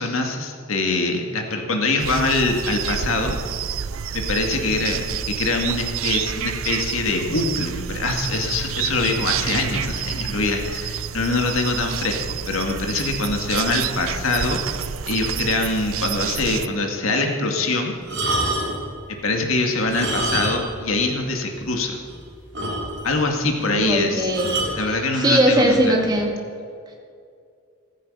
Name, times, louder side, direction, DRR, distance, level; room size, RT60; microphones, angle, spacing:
voice 1, 0.0-3.4 4.1-17.9 19.2-22.0 23.0-24.3 24.8-26.0, left 2 dB, 75° left, 3 dB, 2.1 m, -24 dB
sound 1, 2.0-16.7, right 8 dB, 75° right, 0.5 m, -29 dB
sound 2, 18.0-18.9 19.8-20.8 21.1-21.2 21.7-21.8 22.1-22.2 22.5-23.2 24.3-24.8 25.7-25.9, right 2 dB, 55° right, 3.7 m, -26 dB
voice 2, 23.6-24.5 24.9-26.3, right 1 dB, 20° right, 0 dB, 2.1 m, -20 dB
14.5 x 14.5 x 5.5 m, 2.3 s
head